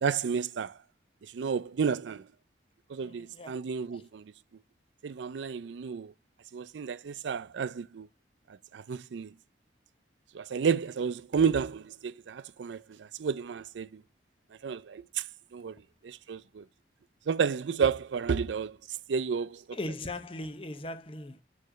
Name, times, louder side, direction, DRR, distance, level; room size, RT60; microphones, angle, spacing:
voice 1, 0.0-0.8 1.2-2.3 2.9-4.3 5.0-6.1 6.5-8.1 8.7-9.3 10.3-14.0 14.6-15.2 15.5-16.6 17.3-18.8 19.1-19.6, right 6 dB, 80° right, 0.4 m, -31 dB
voice 2, 3.0-3.6 3.9-4.1 19.7-21.4, left 2 dB, 30° left, 0.7 m, -39 dB
6.8 x 3.1 x 6.0 m
head